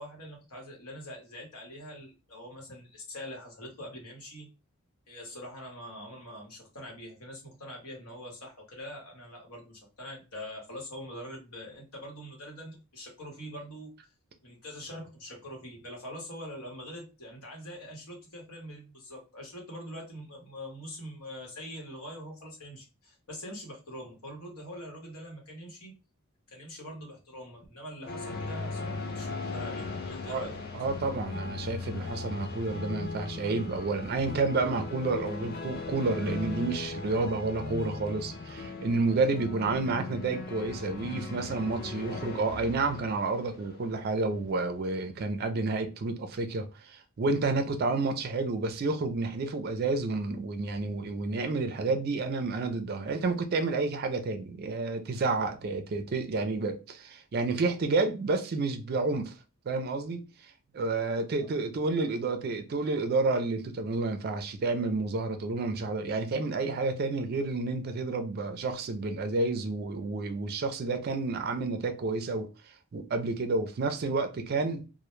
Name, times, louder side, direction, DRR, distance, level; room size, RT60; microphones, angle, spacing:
voice 1, 0.0-4.5 5.1-13.9 14.4-25.9 26.5-30.6, equal, 85° left, 1.0 m, -43 dB
sound 1, 28.1-44.9, left 3 dB, 45° left, 0.4 m, -38 dB
voice 2, 30.8-59.3 59.7-72.5 72.9-74.8, right 3 dB, 45° right, 0.4 m, -30 dB
2.1 x 2.1 x 3.0 m
head